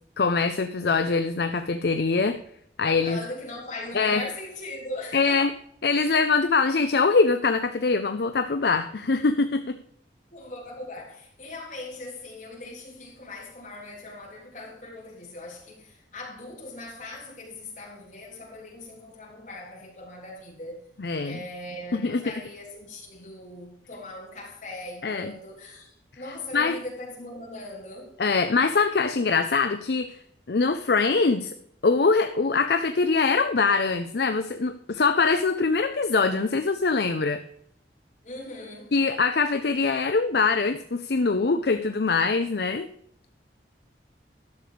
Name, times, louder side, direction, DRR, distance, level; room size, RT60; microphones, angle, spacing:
voice 1, 0.2-2.4 2.8-3.2 3.9-4.2 5.1-5.5 5.8-9.7 21.0-21.4 21.9-22.2 25.0-25.3 26.5-26.8 28.2-30.2 30.5-31.5 31.8-37.4 38.9-42.9, left 4 dB, 65° left, 0.6 m, -23 dB
voice 2, 3.0-5.5 10.3-20.9 21.2-28.2 38.2-38.9, left 2 dB, 45° left, 3.6 m, -40 dB
11.5 x 6.7 x 5.1 m
head